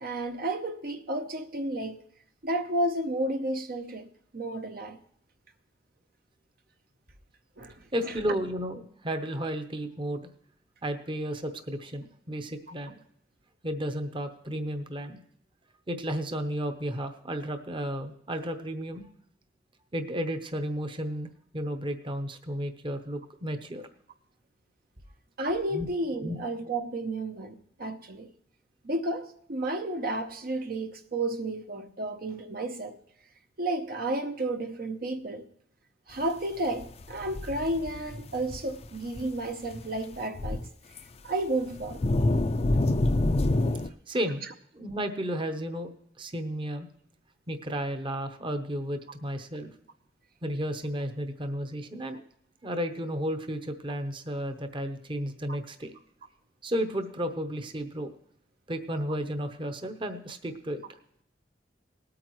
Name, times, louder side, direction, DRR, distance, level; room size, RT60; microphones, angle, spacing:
voice 1, 0.0-2.0 2.4-4.1 4.3-5.0 7.6-7.7 8.0-8.1 25.4-28.3 28.8-32.9 33.6-35.4 36.1-40.6 41.2-42.0, right 1 dB, 55° right, 0.8 m, -32 dB
voice 2, 7.9-10.2 10.8-13.0 13.6-15.2 15.9-19.0 19.9-23.9 25.7-25.9 26.2-26.4 44.1-44.4 44.7-45.9 46.2-46.9 47.5-49.7 50.4-52.2 52.6-55.9 56.6-58.1 58.7-60.8, equal, 30° right, 0.9 m, -33 dB
sound 1, 36.8-38.9 39.2-39.3 39.7-39.8 40.1-40.7 41.0-41.1 41.7-43.9, left 2 dB, 35° left, 0.5 m, -27 dB
19.5 x 8.7 x 3.1 m
head